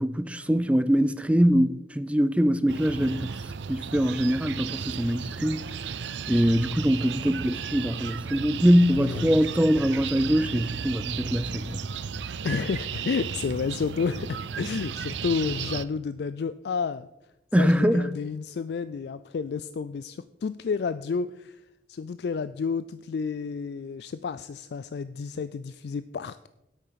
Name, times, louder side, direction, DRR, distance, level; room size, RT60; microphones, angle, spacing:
voice 1, 0.0-3.3 3.7-5.6 6.3-11.8 17.5-18.1, equal, 5° right, 0.5 m, -23 dB
sound 1, 2.7-15.8, right 6 dB, 85° right, 0.5 m, -34 dB
voice 2, 8.9-9.4 12.4-17.1 17.6-21.6 21.9-26.5, left 5 dB, 65° left, 0.3 m, -31 dB
9.9 x 8.5 x 5.7 m
head